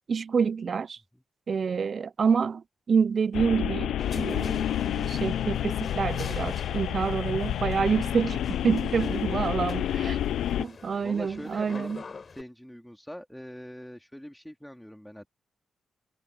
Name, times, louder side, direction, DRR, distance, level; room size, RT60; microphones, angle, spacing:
voice 1, 0.1-1.0 1.5-10.2 10.6-12.0, right 6 dB, 55° right, 0.4 m, -27 dB
sound 1, 3.3-10.6, left 11 dB, 85° left, 0.4 m, -29 dB
sound 2, 4.0-12.4, left 5 dB, 45° left, 6.7 m, -44 dB
voice 2, 8.9-10.4 11.0-11.9 12.3-15.3, equal, 5° left, 3.1 m, -43 dB
cardioid pair, 60°, 0 cm